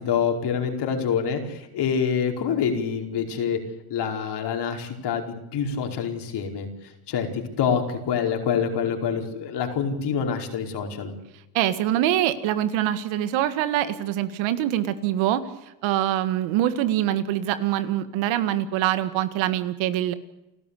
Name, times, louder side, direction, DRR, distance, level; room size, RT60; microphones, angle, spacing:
voice 1, 0.0-3.6 3.9-6.7 7.1-11.1, left 7 dB, 60° left, 3 dB, 5.0 m, -26 dB
voice 2, 11.5-15.4 15.8-20.1, right 12 dB, 80° right, 12 dB, 2.0 m, -24 dB
29.0 x 14.0 x 8.5 m, 0.95 s
supercardioid pair, 95°, 46 cm